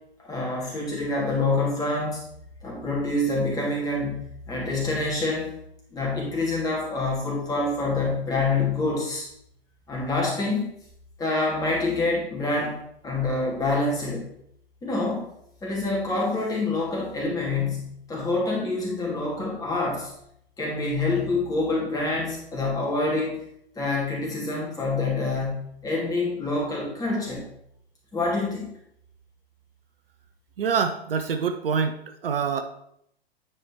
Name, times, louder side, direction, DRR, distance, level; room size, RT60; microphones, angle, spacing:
voice 1, 0.2-2.2 2.6-5.6 5.9-9.3 9.9-10.6 11.2-12.8 13.0-14.3 14.8-15.3 15.6-20.1 20.6-23.4 23.8-27.5 28.1-28.7, left 2 dB, 10° left, -4 dB, 2.8 m, -26 dB
voice 2, 30.6-32.6, right 6 dB, 60° right, 8 dB, 0.8 m, -26 dB
9.6 x 4.9 x 4.6 m, 0.73 s
figure-of-eight pair, 120°, 32 cm